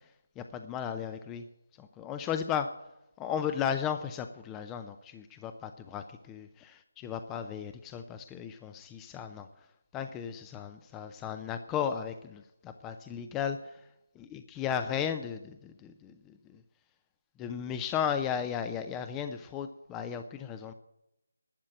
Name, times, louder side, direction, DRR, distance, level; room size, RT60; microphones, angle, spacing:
voice 1, 0.4-1.4 1.8-2.7 3.2-9.5 9.9-13.8 14.2-16.6 17.4-20.7, left 8 dB, 10° left, 9 dB, 0.6 m, -35 dB
12.0 x 8.6 x 9.1 m, 0.87 s
figure-of-eight pair, 160°, 0 cm